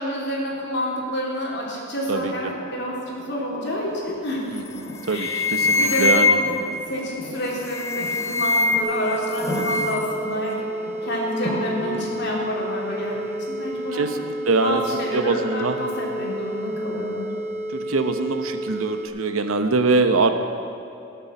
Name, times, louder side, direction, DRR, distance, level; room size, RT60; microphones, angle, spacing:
voice 1, 0.0-4.4 5.1-6.4 6.9-10.6 11.0-14.1 14.6-17.3, equal, 50° left, -3 dB, 3.0 m, -28 dB
voice 2, 2.1-2.5 4.5-4.6 5.0-6.4 9.5-9.8 11.9-12.3 13.9-14.8 15.1-15.8 17.7-20.3, right 3 dB, 75° right, 8 dB, 0.9 m, -23 dB
sound 1, 2.2-16.1 17.9-18.0, left 1 dB, 30° left, 3.2 m, -38 dB
sound 2, 4.6-4.8 5.1-6.7 7.6-9.0 9.3-10.1, left 3 dB, 15° left, 0.4 m, -22 dB
sound 3, 8.8-19.1, right 1 dB, 10° right, 2.8 m, -31 dB
19.0 x 7.1 x 7.1 m, 2.6 s
head